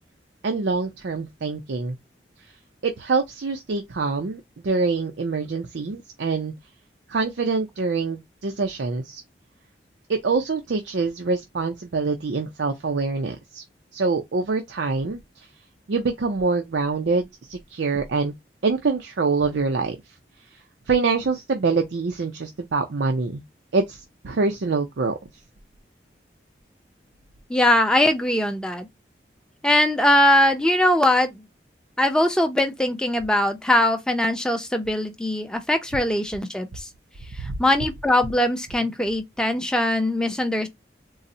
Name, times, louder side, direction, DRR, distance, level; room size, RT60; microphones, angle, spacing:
voice 1, 0.4-2.0 2.8-6.5 7.1-9.2 10.1-13.6 13.9-15.5 15.9-18.3 18.6-20.0 20.9-23.4 23.7-25.2 37.4-37.5, right 4 dB, 85° right, 0.5 m, -25 dB
voice 2, 27.5-28.9 29.6-31.4 32.0-36.9 37.3-40.7, left 1 dB, 5° left, 0.5 m, -21 dB
3.9 x 2.0 x 2.6 m
head